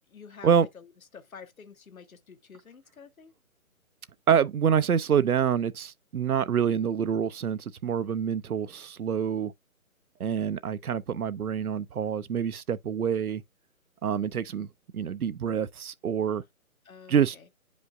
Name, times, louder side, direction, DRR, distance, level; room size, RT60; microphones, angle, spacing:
voice 1, 0.1-3.3 16.8-17.5, left 6 dB, 70° left, 1.4 m, -49 dB
voice 2, 4.3-9.5 10.2-13.4 14.0-14.7 14.9-16.4 17.1-17.4, right 8 dB, 85° right, 0.7 m, -26 dB
9.7 x 5.1 x 2.3 m
figure-of-eight pair, 150°, 42 cm